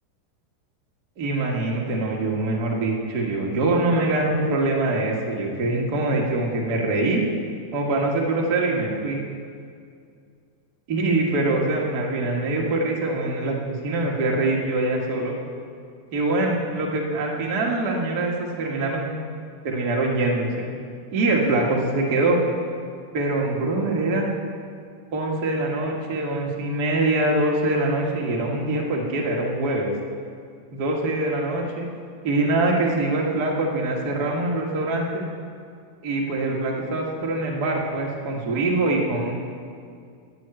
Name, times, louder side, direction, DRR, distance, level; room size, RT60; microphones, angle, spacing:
voice 1, 1.2-7.2 7.7-9.2 10.9-15.3 16.1-19.1 19.6-20.6 21.1-22.4 23.1-24.3 25.1-29.9 30.7-31.9 32.2-35.2 36.0-39.3, right 2 dB, 40° right, -2 dB, 1.5 m, -24 dB
13.5 x 6.3 x 8.9 m, 2.2 s
omnidirectional pair, 3.7 m